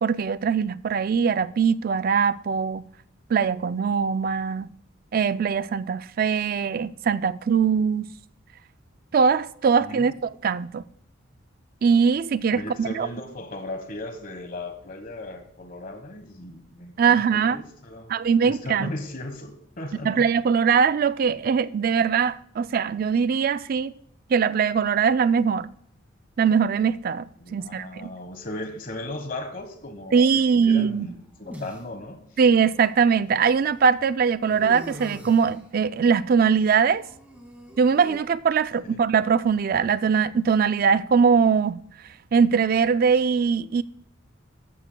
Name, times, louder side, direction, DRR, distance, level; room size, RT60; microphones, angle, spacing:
voice 1, 0.0-2.9 3.3-4.7 5.1-8.1 9.1-10.8 11.8-13.1 17.0-17.6 18.1-18.9 20.0-23.9 24.3-25.7 26.4-27.3 27.5-28.1 30.1-31.1 32.4-37.0 37.8-41.8 42.3-43.8, right 6 dB, 45° right, 0.3 m, -21 dB
voice 2, 9.8-10.1 12.5-18.1 18.4-20.3 27.4-32.2 34.5-34.7 38.8-39.0, left 2 dB, 45° left, 1.2 m, -37 dB
sound 1, 30.6-31.8 32.8-32.9 34.5-35.6 36.9-38.2, equal, 10° right, 1.9 m, -42 dB
15.0 x 12.0 x 2.2 m
head